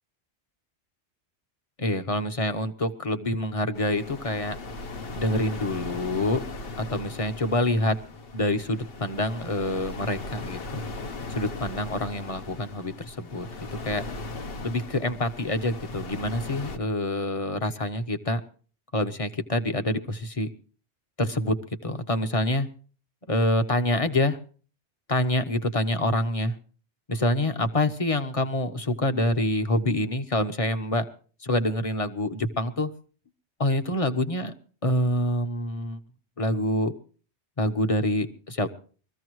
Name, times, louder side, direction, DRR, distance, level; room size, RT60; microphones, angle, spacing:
voice 1, 1.8-4.6 5.1-6.4 6.8-8.0 8.3-10.8 11.3-14.0 14.6-18.4 18.9-20.5 21.2-22.7 23.3-24.4 25.1-26.6 27.1-31.1 31.4-32.9 33.6-34.5 34.8-36.0 36.4-36.9 37.6-38.7, left 1 dB, 30° left, 9 dB, 1.0 m, -26 dB
sound 1, 3.7-16.8, left 3 dB, 60° left, 1.2 m, -38 dB
22.5 x 14.5 x 3.1 m, 0.39 s
omnidirectional pair, 1.2 m